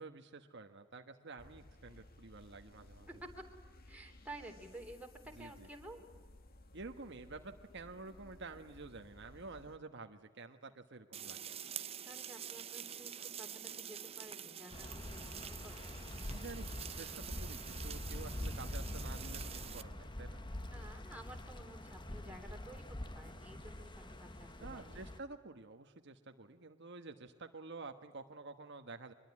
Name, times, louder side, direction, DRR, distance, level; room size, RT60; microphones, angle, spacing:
voice 1, 0.0-3.1 5.3-5.7 6.7-11.6 16.3-16.7 16.9-20.4 24.6-29.1, right 3 dB, 60° right, 6 dB, 1.3 m, -50 dB
sound 1, 1.4-9.8, left 1 dB, 45° left, 1.9 m, -58 dB
voice 2, 3.9-6.0 12.1-16.0 20.7-25.1, right 1 dB, 5° right, 2 dB, 3.4 m, -52 dB
sound 2, 11.1-19.8, right 9 dB, 30° right, 0.7 m, -47 dB
sound 3, 14.7-25.2, left 1 dB, 25° left, 1.3 m, -45 dB
24.5 x 22.0 x 9.8 m, 1.4 s
head